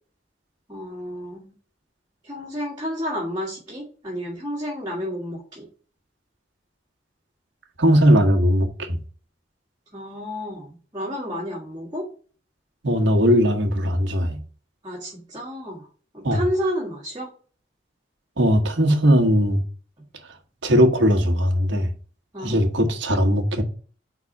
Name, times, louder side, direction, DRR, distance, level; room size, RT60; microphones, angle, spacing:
voice 1, 0.7-1.5 2.2-5.7 9.9-12.1 14.8-15.9 16.1-17.3 22.3-22.6, equal, 20° right, 1.7 m, -31 dB
voice 2, 7.8-9.0 12.8-14.4 16.2-16.4 18.4-19.6 20.6-21.9 22.4-23.6, equal, 80° right, 1.3 m, -19 dB
4.8 x 4.0 x 5.3 m
head